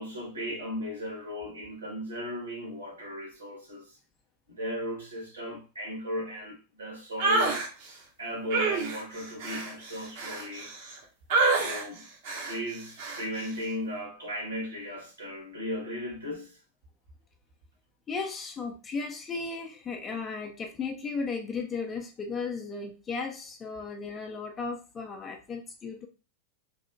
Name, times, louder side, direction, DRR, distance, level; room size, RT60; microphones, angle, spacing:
voice 1, 0.0-4.0 4.5-7.6 8.2-10.7 11.5-12.1 12.4-16.6, equal, 80° right, 1.7 m, -36 dB
sound 1, 7.2-7.7 8.5-10.9 11.3-11.8 12.3-12.6 13.0-13.2, right 3 dB, 50° right, 0.8 m, -27 dB
voice 2, 18.1-26.1, left 4 dB, 25° left, 0.4 m, -35 dB
3.3 x 2.7 x 2.5 m
figure-of-eight pair, 90°, 0 cm